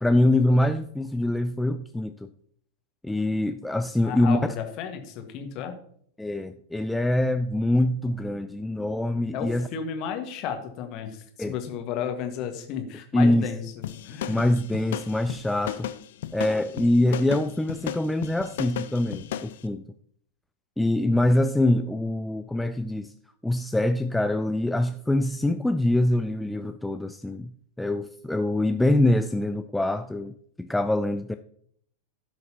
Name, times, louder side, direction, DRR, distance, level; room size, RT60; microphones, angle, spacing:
voice 1, 0.0-2.3 3.0-4.4 6.2-9.7 11.4-11.5 13.1-13.4 14.3-15.9 16.3-19.8 20.8-23.1 23.4-27.5 27.8-30.3 30.6-31.3, left 1 dB, 5° left, 0.4 m, -24 dB
voice 2, 4.0-5.7 9.3-14.6, left 7 dB, 40° left, 1.5 m, -33 dB
sound 1, 13.8-19.6, left 10 dB, 55° left, 0.5 m, -35 dB
16.0 x 6.4 x 2.8 m
figure-of-eight pair, 90°, 0 cm